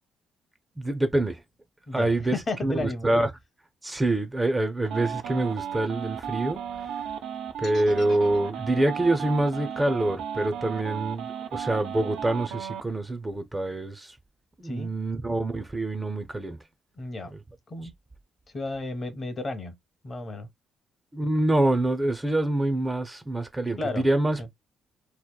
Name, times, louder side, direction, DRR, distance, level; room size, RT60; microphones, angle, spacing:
voice 1, 0.8-1.4 1.9-2.4 2.6-3.3 3.8-7.0 7.6-14.2 14.6-16.6 21.1-24.6, right 1 dB, 15° right, 0.4 m, -26 dB
voice 2, 1.9-3.1 14.6-14.9 17.0-17.3 17.7-17.9 18.5-19.8 20.0-20.5 23.8-24.1 24.4-24.5, left 2 dB, 40° left, 0.7 m, -33 dB
sound 1, 4.8-12.8, right 8 dB, 85° right, 0.3 m, -34 dB
sound 2, 7.6-11.7, left 5 dB, 80° left, 0.9 m, -50 dB
2.8 x 2.1 x 2.2 m
cardioid pair, 90°, 0 cm